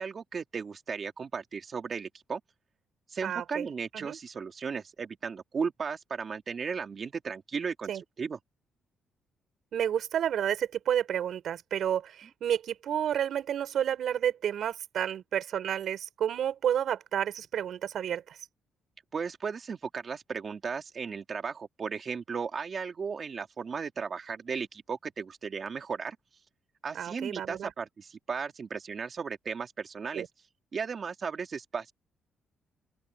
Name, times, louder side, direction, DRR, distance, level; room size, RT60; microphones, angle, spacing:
voice 1, 0.0-2.4 3.1-8.4 19.1-26.2 26.8-30.2 30.7-31.9, right 5 dB, 35° right, 2.9 m, -35 dB
voice 2, 3.2-3.7 3.9-4.2 7.9-8.0 9.7-18.4 26.9-27.7 30.1-30.3, right 9 dB, 55° right, 7.1 m, -30 dB
open air
cardioid pair, 160°, 0 cm